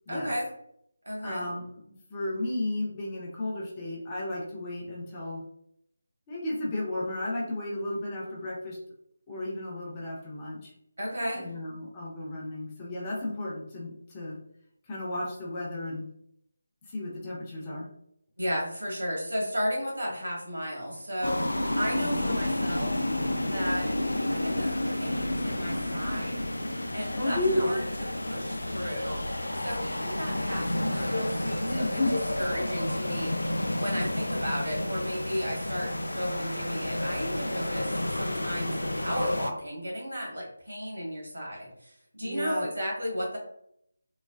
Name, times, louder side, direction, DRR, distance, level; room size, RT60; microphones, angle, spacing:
voice 1, 0.1-0.5 1.0-1.4 11.0-11.5 18.4-21.5 21.8-23.0 23.4-24.0 24.3-26.4 26.9-29.2 29.6-33.3 33.8-43.4, equal, 65° right, -2 dB, 1.3 m, -34 dB
voice 2, 1.2-5.4 6.3-8.8 9.3-10.7 11.3-14.4 14.9-16.1 16.8-17.9 21.9-22.4 27.2-27.7 31.7-32.1 42.2-42.7, left 1 dB, 20° left, -5 dB, 0.6 m, -33 dB
sound 1, 21.2-39.5, left 1 dB, 70° left, 0.3 m, -31 dB
3.1 x 2.2 x 2.3 m, 0.72 s
figure-of-eight pair, 155°, 0 cm